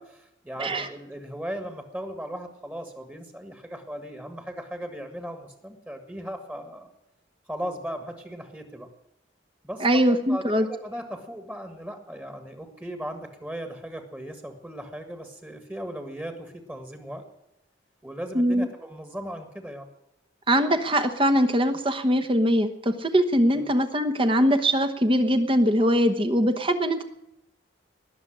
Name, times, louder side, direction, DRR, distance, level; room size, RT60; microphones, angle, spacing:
voice 1, 0.0-6.9 7.5-8.9 9.6-17.2 18.0-19.9 23.5-23.7, equal, 10° right, 6 dB, 1.6 m, -37 dB
voice 2, 9.8-10.7 18.3-18.7 20.5-27.0, equal, 25° right, 8 dB, 1.1 m, -22 dB
19.5 x 7.1 x 9.9 m, 0.85 s
head